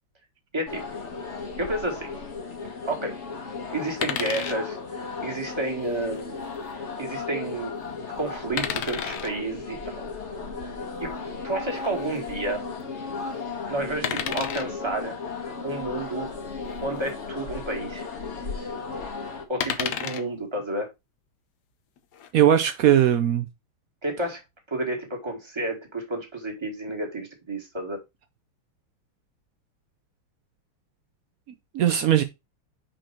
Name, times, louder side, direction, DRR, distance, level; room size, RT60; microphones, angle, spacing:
voice 1, 0.5-1.0 1.6-2.1 2.8-3.2 3.7-6.3 7.0-10.1 11.0-11.1 11.4-12.7 13.7-15.2 15.6-16.3 16.8-18.0 19.5-20.9 24.0-24.4 24.7-28.0, right 2 dB, 15° right, 2.2 m, -31 dB
sound 1, 0.7-19.5, left 4 dB, 35° left, 1.7 m, -35 dB
sound 2, 4.0-4.6 6.0-6.2 8.6-9.3 11.8-11.9 14.0-14.7 16.7-16.8 17.1-17.2 19.6-20.3 22.0-22.3, left 8 dB, 60° left, 1.2 m, -30 dB
voice 2, 22.3-23.5 31.7-32.2, right 10 dB, 85° right, 0.7 m, -19 dB
6.0 x 5.2 x 4.3 m
omnidirectional pair, 2.3 m